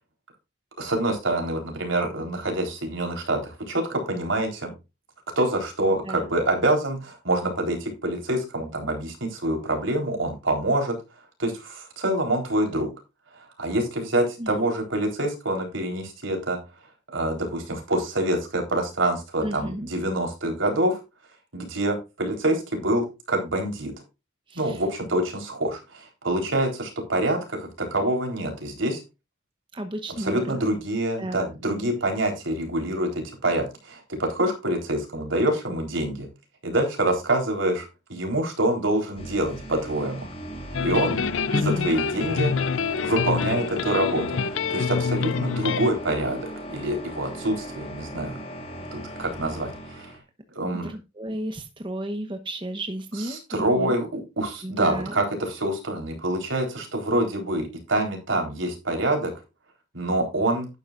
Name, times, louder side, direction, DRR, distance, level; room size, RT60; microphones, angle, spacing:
voice 1, 0.8-4.7 5.4-11.0 11.4-12.9 13.3-16.6 17.1-21.0 21.5-23.9 24.6-29.0 30.2-36.3 36.6-40.3 40.8-41.2 41.5-42.5 43.0-48.4 48.9-50.2 50.6-50.9 53.2-59.3 59.9-60.7, right 1 dB, 75° right, 2 dB, 4.0 m, -26 dB
voice 2, 5.9-6.3 14.4-14.7 19.4-19.9 24.5-24.8 29.7-30.5 31.2-31.4 31.8-31.9 41.5-42.0 50.8-53.4 53.7-53.9 54.6-55.2, right 1 dB, 25° right, 6 dB, 1.0 m, -33 dB
sound 1, 39.2-50.2, right 1 dB, 30° left, 2.3 m, -37 dB
sound 2, 40.7-45.9, left 5 dB, 80° left, 0.5 m, -26 dB
12.0 x 9.4 x 2.5 m, 0.26 s
head